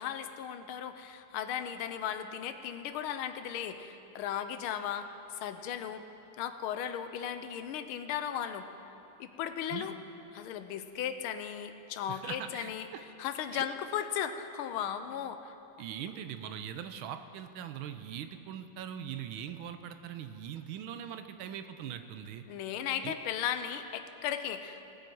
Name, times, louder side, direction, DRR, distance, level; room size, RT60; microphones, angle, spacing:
voice 1, 0.0-5.1 5.4-6.0 6.4-8.7 9.2-9.9 10.3-12.9 13.2-15.5 22.5-24.8, left 9 dB, 80° left, 9 dB, 1.5 m, -36 dB
voice 2, 12.1-13.0 13.5-13.6 15.8-22.4 23.0-23.2, right 9 dB, 75° right, 9 dB, 1.4 m, -41 dB
19.0 x 7.8 x 4.6 m, 2.8 s
omnidirectional pair, 2.4 m